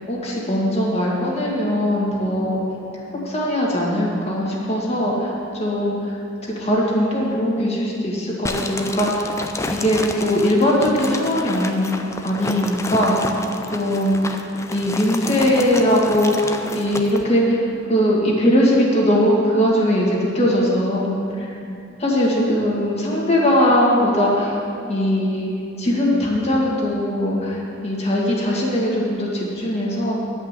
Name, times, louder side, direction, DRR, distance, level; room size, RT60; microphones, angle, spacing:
voice 1, 0.1-2.6 3.2-9.3 9.7-11.9 12.2-13.4 13.7-14.4 14.7-21.6 22.0-24.6 24.9-25.5 25.8-30.1, equal, 30° left, -4 dB, 2.2 m, -20 dB
sound 1, 8.4-17.2, left 2 dB, 15° left, 0.5 m, -30 dB
11.5 x 5.4 x 8.4 m, 2.6 s
head